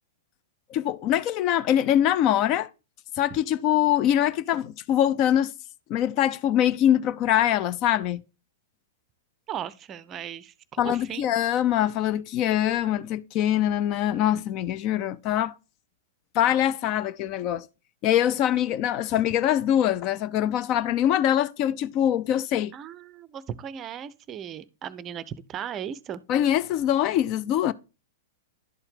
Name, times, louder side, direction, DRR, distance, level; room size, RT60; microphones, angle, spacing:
voice 1, 0.7-2.7 3.2-5.5 5.9-8.2 10.8-15.5 16.3-17.7 18.0-22.7 26.3-27.7, left 11 dB, 40° left, 0.4 m, -23 dB
voice 2, 9.5-11.3 22.7-26.2, right 9 dB, 30° right, 0.5 m, -37 dB
11.0 x 4.4 x 3.6 m
figure-of-eight pair, 100°, 0 cm